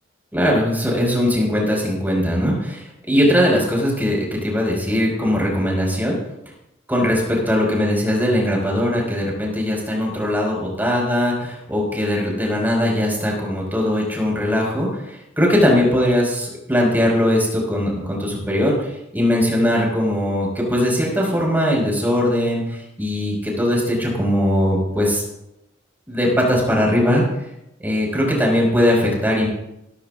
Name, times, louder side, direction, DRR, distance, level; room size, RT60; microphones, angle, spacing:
voice 1, 0.3-6.2 6.9-25.2 26.1-27.2 27.8-29.5, left 1 dB, 10° right, -2 dB, 5.1 m, -20 dB
17.0 x 15.0 x 2.5 m, 0.85 s
head